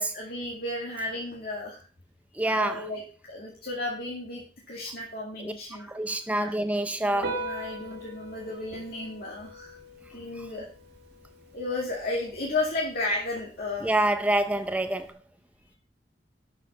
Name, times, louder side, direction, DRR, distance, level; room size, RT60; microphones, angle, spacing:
voice 1, 0.1-1.8 2.3-5.9 6.3-6.5 7.1-9.8 10.1-10.7 11.5-13.9, left 2 dB, 60° left, 2.3 m, -33 dB
voice 2, 2.4-2.8 5.4-5.5 5.9-7.3 13.8-15.1, right 1 dB, 10° right, 0.5 m, -26 dB
Piano, 7.1-15.1, right 1 dB, 70° right, 3.2 m, -42 dB
12.0 x 6.0 x 5.6 m
head